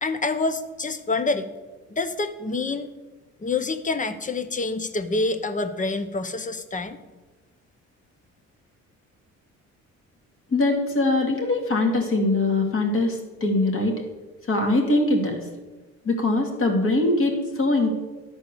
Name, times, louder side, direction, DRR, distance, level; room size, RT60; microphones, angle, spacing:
voice 1, 0.0-1.5 1.9-2.9 3.4-7.0, left 3 dB, 25° left, 10 dB, 0.8 m, -27 dB
voice 2, 10.5-13.9 14.5-15.4 16.1-17.9, left 2 dB, 45° left, 2 dB, 2.2 m, -22 dB
12.0 x 4.4 x 6.6 m, 1.2 s
cardioid pair, 90°, 30 cm